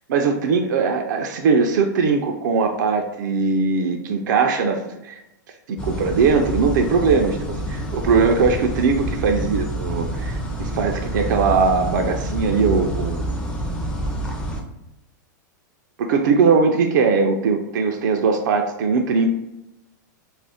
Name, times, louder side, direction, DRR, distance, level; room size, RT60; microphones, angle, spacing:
voice 1, 0.1-5.2 5.7-13.3 16.0-19.3, right 5 dB, 70° right, 4 dB, 0.4 m, -20 dB
sound 1, 5.8-14.6, right 1 dB, 10° left, 0.4 m, -27 dB
2.4 x 2.0 x 3.4 m, 0.91 s
hypercardioid pair, 140°, 10 cm